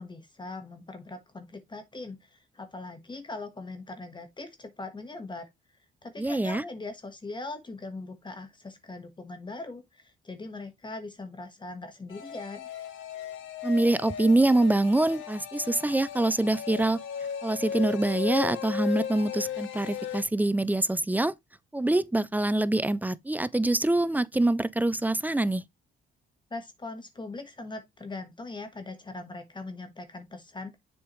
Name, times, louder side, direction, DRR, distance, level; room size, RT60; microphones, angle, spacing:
voice 1, 0.0-5.5 6.0-12.7 26.5-30.8, left 3 dB, 25° left, 1.3 m, -40 dB
voice 2, 6.2-6.6 13.6-17.0 17.4-21.3 21.7-25.6, right 2 dB, 10° right, 0.4 m, -25 dB
sound 1, 12.1-20.2, left 8 dB, 80° left, 1.5 m, -36 dB
7.1 x 4.7 x 3.0 m
cardioid pair, 90°, 20 cm